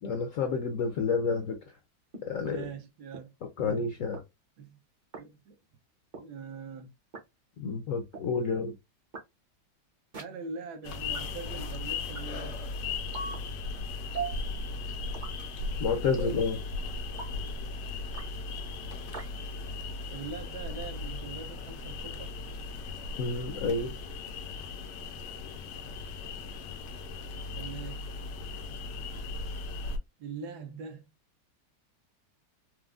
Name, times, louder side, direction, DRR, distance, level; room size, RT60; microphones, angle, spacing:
voice 1, 0.0-1.6 2.2-2.7 3.4-4.2 7.6-8.7 15.8-16.6 23.2-23.9, left 4 dB, 70° left, 0.7 m, -29 dB
sound 1, 2.1-2.2 3.1-3.2 4.1-4.2 5.1-5.2 6.1-6.2 7.1-7.2 8.1-8.2 9.1-9.2 10.1-10.2 11.1-11.2 12.1-12.2 13.1-13.4 14.1-14.4 15.1-15.4 16.1-16.4 17.1-17.3 18.1-18.3 19.1-19.3, right 4 dB, 45° right, 0.6 m, -37 dB
voice 2, 2.4-3.3 3.6-3.9 4.6-4.8 5.2-5.6 6.1-6.9 10.2-12.6 20.1-22.3 27.5-28.0 30.2-31.0, right 5 dB, 75° right, 1.1 m, -42 dB
sound 2, 10.8-30.0, left 3 dB, 90° left, 1.3 m, -37 dB
4.5 x 2.0 x 2.3 m
omnidirectional pair, 1.8 m